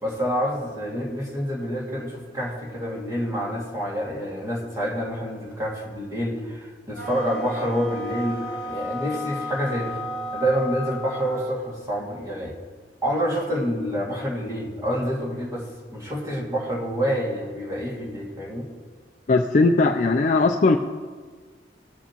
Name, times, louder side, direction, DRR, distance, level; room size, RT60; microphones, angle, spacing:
voice 1, 0.0-10.0 10.3-12.6 13.0-18.7, equal, 20° right, -4 dB, 2.2 m, -27 dB
sound 1, 6.9-11.6, left 1 dB, 5° left, 1.9 m, -33 dB
voice 2, 19.3-20.8, left 3 dB, 45° left, 5 dB, 0.4 m, -19 dB
18.0 x 6.9 x 3.0 m, 1.5 s
head